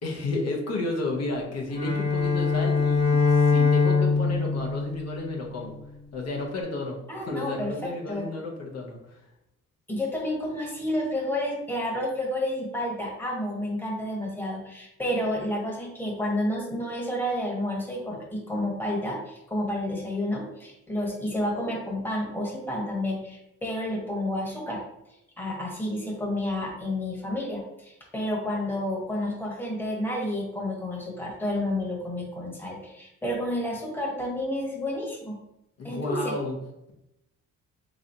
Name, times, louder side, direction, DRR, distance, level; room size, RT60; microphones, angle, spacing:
voice 1, 0.0-5.8 6.1-9.2 35.8-36.6, left 2 dB, 55° left, -1 dB, 0.9 m, -32 dB
Bowed string instrument, 1.7-5.9, left 4 dB, 75° left, 1.4 m, -23 dB
voice 2, 7.1-8.3 9.9-24.8 25.4-35.4 35.8-36.3, left 1 dB, 5° left, -2 dB, 1.1 m, -30 dB
3.8 x 3.0 x 2.7 m, 0.88 s
cardioid pair, 90°, 30 cm